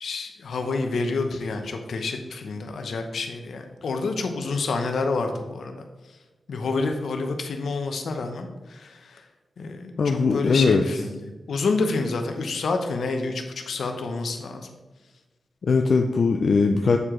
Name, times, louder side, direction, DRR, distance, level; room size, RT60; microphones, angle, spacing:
voice 1, 0.0-5.7 6.5-9.2 9.6-11.2 11.5-14.7, left 3 dB, 85° left, 5 dB, 0.8 m, -28 dB
voice 2, 10.0-10.8 15.6-17.0, left 4 dB, 65° left, 4 dB, 0.4 m, -20 dB
8.2 x 4.7 x 3.7 m, 1.2 s
wide cardioid pair, 105°, 0 cm